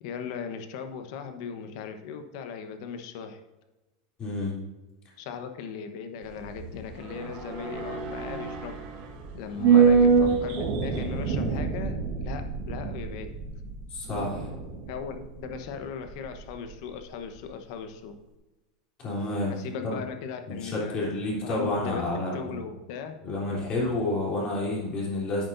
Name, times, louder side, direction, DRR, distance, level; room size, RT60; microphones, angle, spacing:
voice 1, 0.0-3.4 5.2-8.8 9.3-13.4 14.9-18.2 19.5-21.0 21.4-22.0 22.3-23.1, left 6 dB, 55° left, 7 dB, 1.0 m, -38 dB
voice 2, 4.2-4.6 9.6-9.9 13.9-14.5 19.0-19.6 19.8-20.0 20.5-22.5 23.2-25.5, left 2 dB, 25° left, -4 dB, 3.3 m, -30 dB
sound 1, 6.2-16.7 17.0-17.1, right 6 dB, 45° right, 1.5 m, -26 dB
10.5 x 8.6 x 2.6 m, 1.1 s
supercardioid pair, 165°, 3 cm